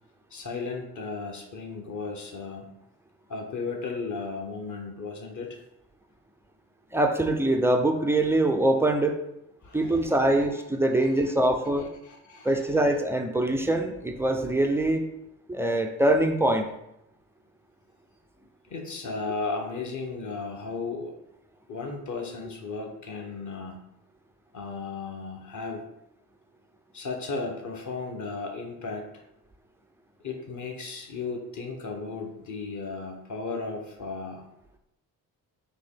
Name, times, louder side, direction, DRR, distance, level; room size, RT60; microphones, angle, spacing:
voice 1, 0.3-2.7 3.3-5.6 9.6-10.6 11.0-11.3 11.8-12.8 18.7-21.2 21.7-23.8 24.5-25.8 26.9-29.2 30.2-34.5, left 4 dB, 35° left, 3 dB, 1.0 m, -35 dB
voice 2, 6.9-9.2 9.7-11.9 12.4-15.0 15.5-16.7, right 1 dB, 5° right, 4 dB, 0.3 m, -23 dB
3.9 x 2.9 x 3.9 m, 0.82 s
hypercardioid pair, 45°, 49 cm